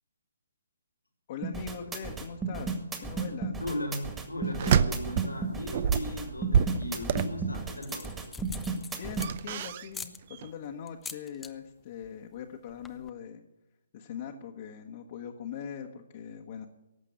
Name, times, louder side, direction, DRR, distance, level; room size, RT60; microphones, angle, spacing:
voice 1, 1.3-3.6 8.9-13.4 13.9-16.7, left 8 dB, 40° left, 1 dB, 1.2 m, -41 dB
sound 1, 1.4-9.3, right 4 dB, 10° right, 1.8 m, -33 dB
voice 2, 3.6-8.1, left 1 dB, 90° left, 2 dB, 3.2 m, -37 dB
more door, 4.5-5.4 5.7-7.8 9.1-10.1 10.3-10.5, right 8 dB, 40° right, 0.6 m, -27 dB
sound 2, 6.8-7.3 7.7-9.5 9.9-10.2 10.9-11.5 11.8-12.1 12.4-12.5 12.7-13.1, left 4 dB, 5° left, 0.8 m, -43 dB
17.5 x 7.5 x 8.3 m, 0.97 s
figure-of-eight pair, 140°, 0 cm